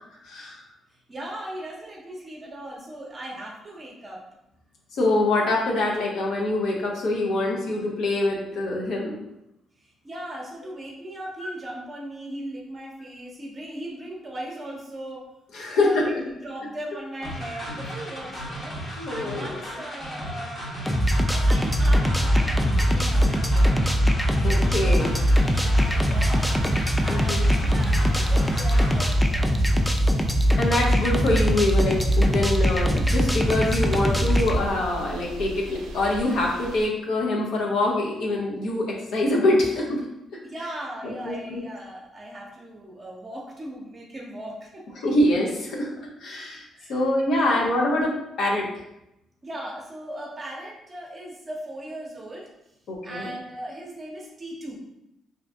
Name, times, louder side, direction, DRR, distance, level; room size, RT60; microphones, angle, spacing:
voice 1, 0.2-0.6 4.9-9.2 15.5-16.2 19.0-19.5 24.4-25.1 27.1-27.5 30.6-40.0 41.2-41.6 45.0-45.9 46.2-46.6 46.9-48.1 48.4-48.7 52.9-53.3, left 2 dB, 75° left, -2 dB, 0.6 m, -24 dB
voice 2, 0.9-4.2 9.8-15.3 15.7-18.8 19.1-20.6 21.3-23.7 24.4-26.5 27.0-30.1 40.4-44.8 46.7-47.7 49.4-52.5 53.0-54.8, right 1 dB, 30° right, -2 dB, 0.6 m, -38 dB
sound 1, 17.2-29.1, equal, 40° left, 0.9 m, -36 dB
sound 2, 20.9-34.6, equal, 5° left, 0.3 m, -21 dB
field-recording, 25.0-36.9, right 2 dB, 90° right, 0.4 m, -39 dB
2.6 x 2.5 x 3.4 m, 0.87 s
cardioid pair, 90°, 0 cm